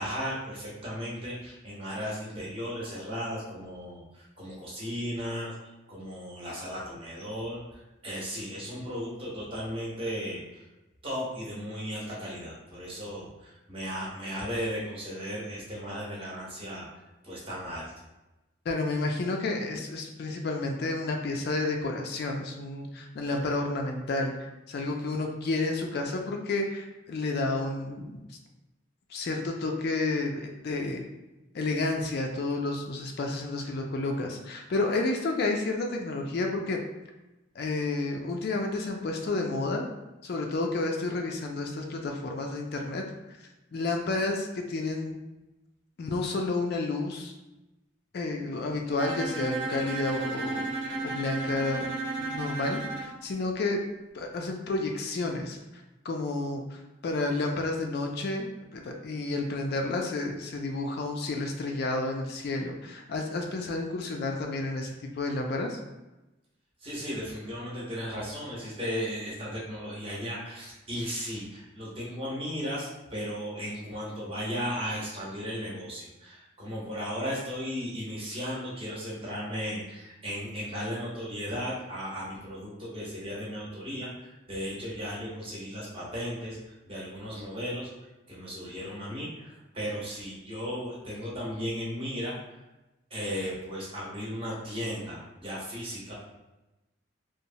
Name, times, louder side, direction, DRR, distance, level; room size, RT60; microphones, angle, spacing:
voice 1, 0.0-10.7 11.0-17.9 66.8-87.9 88.3-92.6 93.1-96.1, equal, 30° right, -5 dB, 0.8 m, -36 dB
voice 2, 18.7-24.3 24.7-28.2 29.1-31.0 31.5-36.8 37.6-39.8 40.2-43.0 43.7-45.2 46.0-47.3 48.1-50.6 51.0-51.9 52.2-53.8 54.1-58.5 58.7-65.8, left 2 dB, 55° left, 2 dB, 0.3 m, -31 dB
Bowed string instrument, 49.0-53.2, right 3 dB, 60° right, 0.4 m, -33 dB
2.9 x 2.0 x 2.6 m, 1.0 s
head